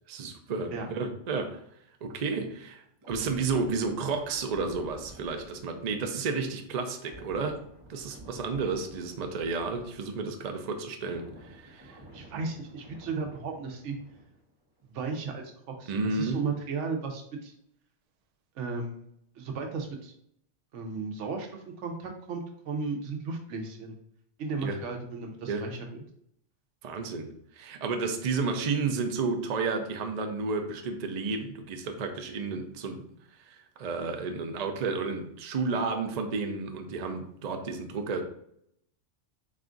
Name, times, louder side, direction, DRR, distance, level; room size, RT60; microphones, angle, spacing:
voice 1, 0.1-1.6 2.0-7.6 7.9-12.0 15.9-16.4 24.6-24.8 25.5-25.6 26.8-27.3 27.6-33.0 33.5-38.2, right 4 dB, 55° right, 5 dB, 0.4 m, -32 dB
sound 1, 3.0-10.5 10.8-14.5 14.8-15.0, right 1 dB, 20° right, 0.9 m, -51 dB
voice 2, 11.9-14.0 14.9-17.5 18.6-19.0 19.4-20.1 20.7-24.0 24.4-26.0, right 4 dB, 75° right, 3 dB, 1.0 m, -35 dB
4.2 x 2.4 x 3.7 m, 0.70 s
omnidirectional pair, 1.3 m